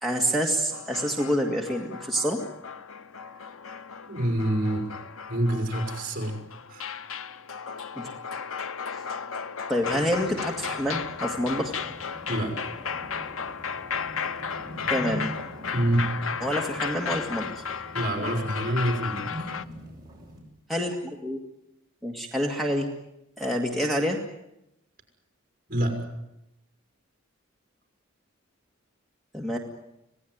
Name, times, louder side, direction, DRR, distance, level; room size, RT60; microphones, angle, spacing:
voice 1, 0.0-2.4 8.0-8.1 8.9-9.0 9.7-11.7 14.9-15.3 16.4-17.6 20.7-21.4 22.0-22.9 23.4-24.2 29.3-29.6, equal, ahead, 2 dB, 2.0 m, -27 dB
sound 1, 0.7-19.7, left 6 dB, 80° left, 0.9 m, -35 dB
voice 2, 4.1-4.9 5.3-6.4 6.7-6.9 12.3-12.6 15.7-16.1 17.9-19.5 25.7-26.0, right 1 dB, 40° right, 4 dB, 5.4 m, -26 dB
sound 2, 9.8-20.4, equal, 20° right, 7.0 m, -43 dB
26.5 x 18.0 x 9.5 m, 0.86 s
head